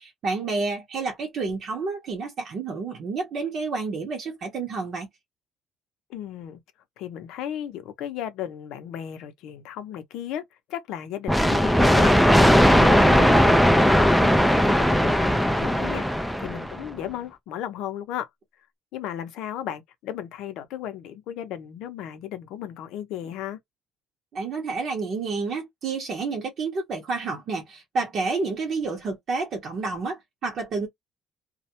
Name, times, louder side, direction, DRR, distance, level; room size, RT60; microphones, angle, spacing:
voice 1, 0.0-5.1 24.3-30.9, right 4 dB, 45° right, 0.7 m, -29 dB
voice 2, 6.1-6.6 7.0-12.2 12.7-18.3 18.9-23.6, left 10 dB, 75° left, 0.6 m, -35 dB
sound 1, 11.3-16.9, equal, ahead, 0.3 m, -18 dB
2.2 x 2.1 x 2.7 m
cardioid pair, 135°, 0 cm